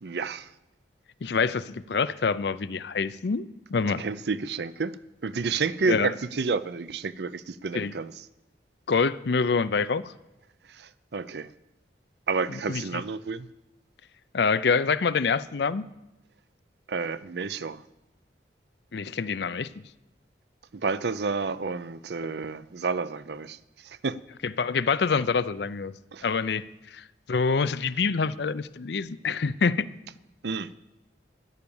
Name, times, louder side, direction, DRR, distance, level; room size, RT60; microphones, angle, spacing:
voice 1, 0.0-0.5 4.0-5.0 5.2-8.1 10.7-11.5 12.3-13.5 16.9-17.8 20.7-23.6 23.8-24.2 26.1-26.2 30.4-30.7, right 4 dB, 65° right, 0.5 m, -30 dB
voice 2, 1.2-3.4 3.7-4.0 5.9-6.1 7.7-7.9 8.9-10.1 12.5-13.0 14.3-15.8 18.9-19.7 24.4-25.9 26.2-29.9, left 5 dB, 70° left, 0.5 m, -26 dB
13.5 x 10.5 x 7.1 m
head